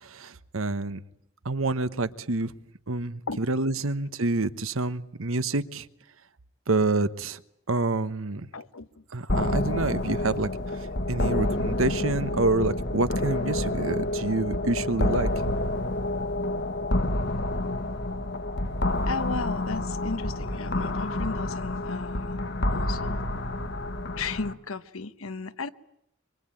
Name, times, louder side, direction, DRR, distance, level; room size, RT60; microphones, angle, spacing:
voice 1, 0.0-1.0 1.4-2.5 2.9-5.9 6.7-7.4 7.7-8.5 9.1-10.5 11.1-15.3, right 3 dB, 70° right, 1.1 m, -27 dB
voice 2, 8.5-8.9 19.1-22.4 22.7-23.2 24.2-25.7, left 4 dB, 75° left, 1.1 m, -35 dB
sound 1, 9.3-24.5, left 1 dB, 50° left, 1.5 m, -28 dB
25.5 x 24.5 x 9.1 m
head